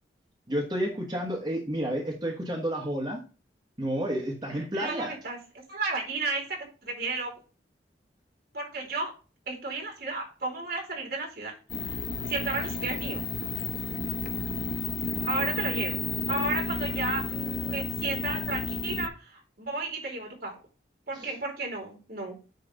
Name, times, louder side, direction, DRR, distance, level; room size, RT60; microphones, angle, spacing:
voice 1, 0.5-3.2 3.8-5.1 15.0-15.3 21.2-21.3, right 1 dB, 25° right, -1 dB, 1.2 m, -31 dB
voice 2, 4.6-5.4 5.7-7.3 8.5-9.1 9.5-11.5 12.3-13.2 15.2-16.0 16.3-20.5 21.1-22.4, right 3 dB, 55° right, 0 dB, 3.0 m, -33 dB
sound 1, 11.7-19.1, left 4 dB, 50° left, 0.7 m, -32 dB
9.4 x 3.1 x 5.2 m, 0.35 s
head